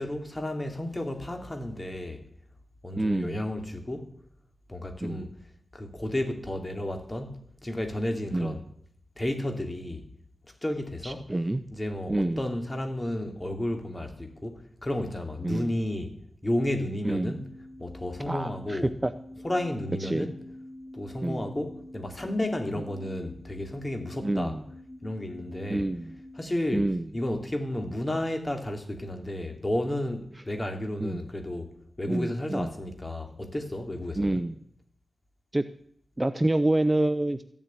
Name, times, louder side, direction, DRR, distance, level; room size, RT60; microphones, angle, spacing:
voice 1, 0.0-2.3 2.8-4.1 4.7-5.3 5.7-8.6 9.2-10.1 10.6-11.3 11.7-16.2 16.4-17.5 17.8-18.9 19.4-20.4 20.9-24.5 25.0-25.9 26.3-26.9 27.1-31.7 32.0-34.4, left 1 dB, 25° left, 2.7 m, -32 dB
voice 2, 3.0-3.4 5.0-5.3 8.3-8.6 11.0-11.6 12.1-12.4 15.4-15.7 17.0-17.4 18.3-19.1 20.0-20.3 21.2-21.5 24.2-24.6 25.7-26.1 26.7-27.0 31.0-31.3 32.1-32.7 34.2-34.6 35.5-35.7 36.2-37.4, right 1 dB, 20° right, 0.7 m, -27 dB
sound 1, 16.8-26.4, left 1 dB, 60° left, 6.3 m, -46 dB
14.5 x 7.4 x 9.7 m
wide cardioid pair, 70°, 0 cm